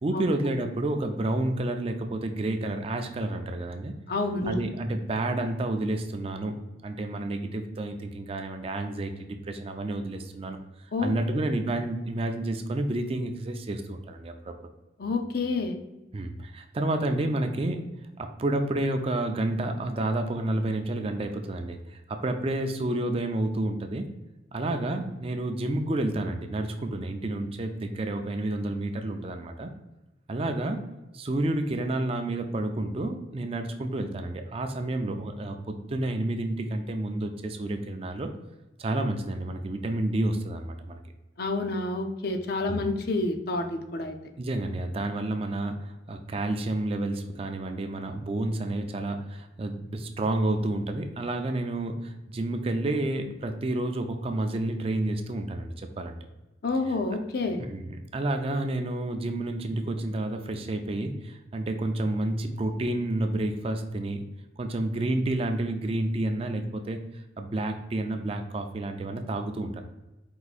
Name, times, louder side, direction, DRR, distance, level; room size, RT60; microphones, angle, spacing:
voice 1, 0.0-3.9 4.4-6.6 6.8-10.6 11.0-14.5 16.1-17.9 18.2-24.1 24.5-29.7 30.3-30.8 31.1-38.3 38.8-41.0 42.7-42.9 44.4-56.2 57.7-64.2 64.6-67.0 67.4-69.8, right 1 dB, 30° right, 6 dB, 0.4 m, -30 dB
voice 2, 4.1-4.5 10.9-11.4 15.0-15.7 41.4-44.2 56.6-57.6, left 3 dB, 55° left, 6 dB, 0.5 m, -29 dB
4.7 x 2.6 x 4.0 m, 1.0 s
head